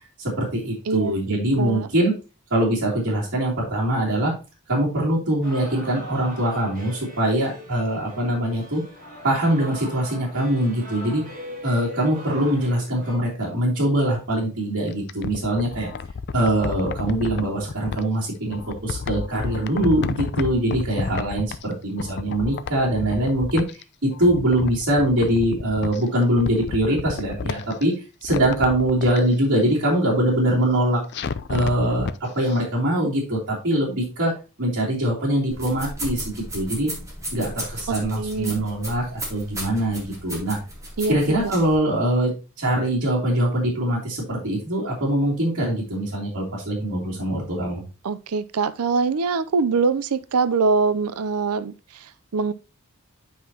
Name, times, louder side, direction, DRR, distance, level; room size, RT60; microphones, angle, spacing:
voice 1, 0.2-2.1 2.5-4.3 4.7-8.8 9.2-11.2 11.6-15.9 16.3-23.6 24.0-27.9 28.2-31.0 31.5-34.3 34.6-36.9 37.3-40.6 41.1-42.3 42.6-47.8, right 1 dB, 60° right, 3.0 m, -23 dB
voice 2, 0.9-1.2 1.6-1.9 37.9-38.7 41.0-41.2 48.0-52.5, right 4 dB, 85° right, 0.5 m, -24 dB
sound 1, 5.4-13.2, equal, 40° right, 4.6 m, -40 dB
sound 2, 14.9-18.0 18.5-21.7 22.0-23.8 24.1-26.0 26.3-27.8 28.2-29.2 31.1-32.2 32.5-32.6, left 5 dB, 50° left, 0.5 m, -31 dB
sound 3, 35.5-41.8, right 1 dB, 15° right, 2.8 m, -35 dB
9.4 x 5.5 x 2.8 m
head